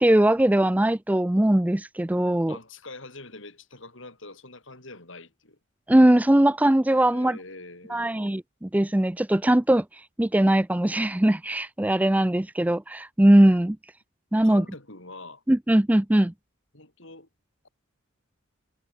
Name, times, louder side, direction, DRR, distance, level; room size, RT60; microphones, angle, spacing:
voice 1, 0.0-2.6 5.9-7.4 7.9-9.8 10.2-13.8 14.3-14.6 15.5-16.3, right 1 dB, 5° right, 0.4 m, -20 dB
voice 2, 2.5-5.6 7.1-8.3 14.4-15.4 16.7-17.3, left 2 dB, 60° left, 6.1 m, -44 dB
head